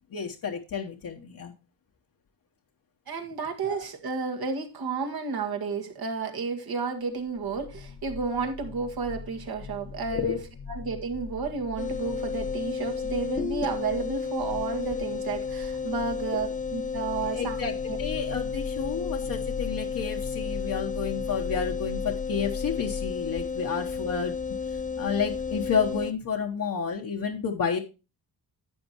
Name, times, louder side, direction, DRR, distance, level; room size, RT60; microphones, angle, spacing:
voice 1, 0.1-1.5 3.6-3.8 10.1-10.4 17.3-17.7 18.0-24.4 24.6-27.8, left 6 dB, 55° left, 0 dB, 1.1 m, -30 dB
voice 2, 3.1-10.4 10.7-17.6 17.9-18.0, right 5 dB, 65° right, 4 dB, 1.9 m, -32 dB
sound 1, 7.3-23.1, left 6 dB, 70° left, 1.3 m, -40 dB
sound 2, 11.8-26.1, left 5 dB, 20° left, 0.5 m, -32 dB
11.0 x 7.8 x 3.0 m, 0.29 s
cardioid pair, 75°, 40 cm